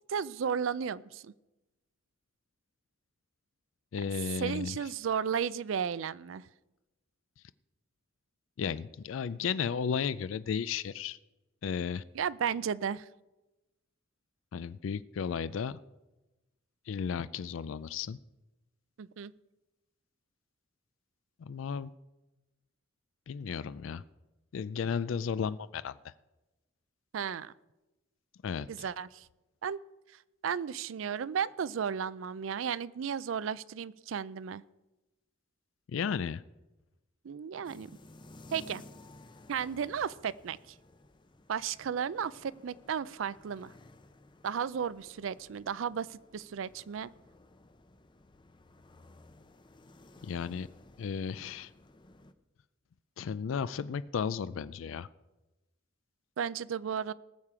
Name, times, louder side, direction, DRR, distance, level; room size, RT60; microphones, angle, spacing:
voice 1, 0.1-1.3 4.4-6.5 12.1-13.1 19.0-19.3 27.1-27.5 28.7-29.3 29.6-29.8 30.4-34.6 37.2-37.9 38.5-38.8 39.5-40.6 41.5-43.7 44.4-47.1 56.4-57.1, right 7 dB, 75° right, 19 dB, 0.4 m, -34 dB
voice 2, 3.9-4.8 8.6-11.2 11.6-12.0 14.5-15.8 16.9-18.2 21.4-21.9 23.3-24.0 24.5-26.1 28.4-28.9 35.9-36.4 50.2-50.7 51.0-51.7 53.2-55.1, left 6 dB, 80° left, 16 dB, 0.4 m, -34 dB
sound 1, 37.6-52.3, left 2 dB, 25° left, 0.6 m, -56 dB
19.0 x 7.4 x 4.9 m, 1.1 s
head